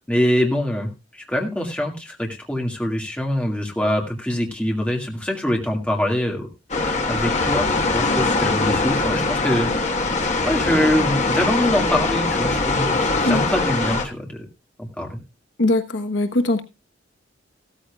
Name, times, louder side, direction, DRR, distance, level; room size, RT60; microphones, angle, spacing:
voice 1, 0.1-6.5 6.8-10.0 10.4-14.4 14.8-15.2, equal, 5° left, 2.0 m, -24 dB
sound 1, 6.7-14.0, left 3 dB, 40° left, 1.4 m, -22 dB
voice 2, 15.6-16.6, left 2 dB, 85° left, 1.2 m, -20 dB
15.5 x 13.5 x 2.4 m
head